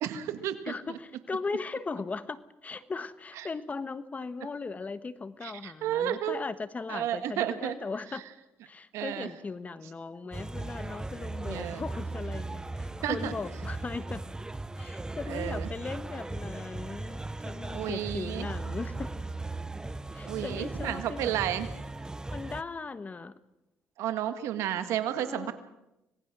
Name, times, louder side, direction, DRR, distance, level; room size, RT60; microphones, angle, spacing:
voice 1, 0.0-0.7 5.4-6.4 6.9-7.8 8.1-8.2 8.9-9.3 11.5-11.8 13.0-13.3 15.3-15.7 17.7-18.5 20.3-21.7 24.0-25.5, right 11 dB, 80° right, 10 dB, 1.8 m, -32 dB
voice 2, 0.6-8.2 8.7-14.2 14.8-17.2 17.4-19.1 20.1-21.4 22.3-23.4 25.2-25.5, left 4 dB, 30° left, 14 dB, 1.3 m, -38 dB
sound 1, 10.3-22.6, right 2 dB, 15° right, 0.7 m, -37 dB
25.5 x 19.0 x 6.1 m, 0.92 s
supercardioid pair, 75°, 5 cm